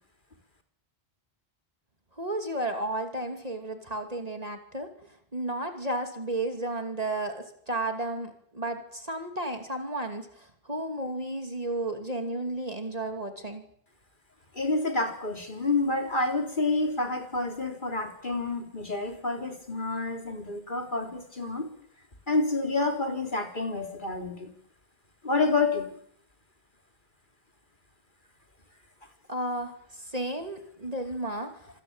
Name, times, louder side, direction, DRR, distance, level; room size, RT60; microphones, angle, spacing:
voice 1, 2.2-13.6 29.3-31.6, right 1 dB, 40° right, 6 dB, 2.7 m, -33 dB
voice 2, 14.5-21.7 22.3-24.5 25.2-26.0, left 3 dB, 50° left, 5 dB, 3.9 m, -28 dB
27.0 x 19.0 x 8.8 m, 0.67 s
omnidirectional pair, 1.0 m